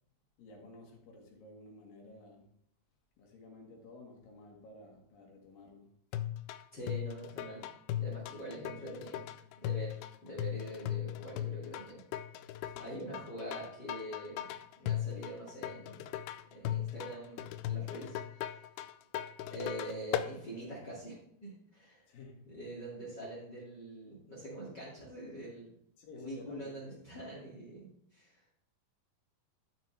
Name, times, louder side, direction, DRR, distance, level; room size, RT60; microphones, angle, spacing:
voice 1, 0.4-2.5 3.2-5.9 12.7-13.1 22.1-22.5 26.0-26.9, left 2 dB, 65° left, 3.3 m, -53 dB
sound 1, 6.1-20.3, left 12 dB, 85° left, 2.4 m, -38 dB
voice 2, 6.7-7.6 8.0-9.2 9.6-10.0 10.2-12.0 12.8-14.5 14.8-16.0 16.5-18.6 19.5-21.1 21.4-22.1 22.5-25.7 26.1-28.7, right 1 dB, 30° left, 2.6 m, -44 dB
12.5 x 6.5 x 3.4 m
omnidirectional pair, 4.5 m